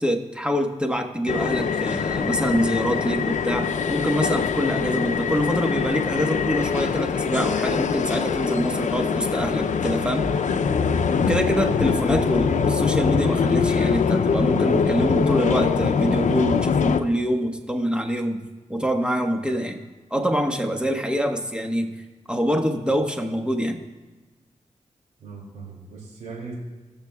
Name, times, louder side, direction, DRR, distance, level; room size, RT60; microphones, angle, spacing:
voice 1, 0.0-10.3 11.2-18.4 18.7-19.8 20.1-22.0 22.3-23.8, equal, 10° right, 4 dB, 1.3 m, -25 dB
sound 1, 1.3-17.0, left 6 dB, 75° left, 0.6 m, -23 dB
voice 2, 11.0-11.4 25.2-26.5, right 4 dB, 80° right, -4 dB, 2.7 m, -39 dB
20.0 x 6.9 x 2.4 m, 1.2 s
cardioid pair, 50°, 13 cm